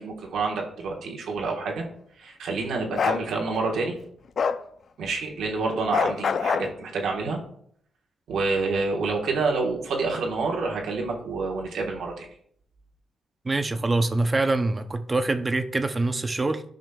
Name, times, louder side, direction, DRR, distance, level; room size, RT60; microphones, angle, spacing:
voice 1, 0.0-1.8 2.2-4.0 5.0-7.4 8.3-12.3, right 3 dB, 85° right, 0 dB, 1.2 m, -28 dB
Bark, 3.0-3.2 4.4-4.6 5.9-6.7, left 6 dB, 55° left, 0.4 m, -24 dB
voice 2, 13.4-16.6, right 2 dB, 25° right, 10 dB, 0.5 m, -24 dB
10.5 x 5.1 x 2.3 m, 0.66 s
cardioid pair, 95°, 0 cm